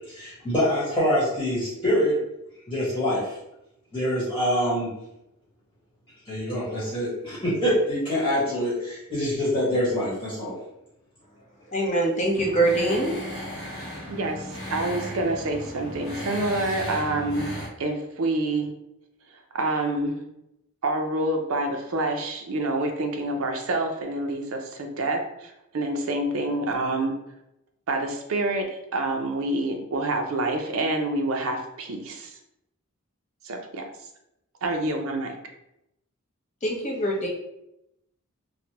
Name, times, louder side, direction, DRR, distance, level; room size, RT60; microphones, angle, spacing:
voice 1, 0.1-2.2 2.7-3.4 3.9-4.9 6.2-10.5, equal, 15° left, -10 dB, 1.1 m, -25 dB
voice 2, 11.7-13.1 36.6-37.3, right 1 dB, 35° left, -2 dB, 0.7 m, -23 dB
sound 1, 12.3-17.7, equal, 90° left, 1.0 m, -35 dB
voice 3, 14.1-18.7 19.5-20.2 20.8-27.1 27.9-32.4 33.4-33.9 34.6-35.3, right 2 dB, 65° right, 4 dB, 0.5 m, -27 dB
3.2 x 2.1 x 2.8 m, 0.83 s
head